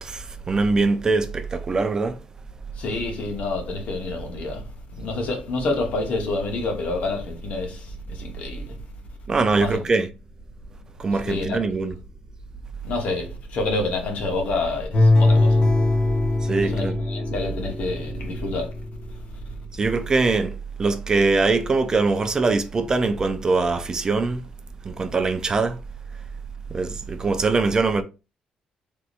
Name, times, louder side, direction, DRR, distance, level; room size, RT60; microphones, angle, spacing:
voice 1, 0.0-2.2 9.3-10.1 11.0-12.0 16.4-17.0 19.8-24.4 24.8-25.8 26.7-28.0, right 3 dB, 25° right, 0.4 m, -22 dB
voice 2, 2.8-4.6 5.0-8.7 9.6-9.8 11.3-11.6 12.8-15.6 16.6-18.7, left 2 dB, 65° left, 1.0 m, -28 dB
sound 1, 14.9-19.0 19.5-19.6, left 2 dB, 35° left, 1.0 m, -21 dB
3.5 x 2.8 x 2.5 m
cardioid pair, 125°, 3 cm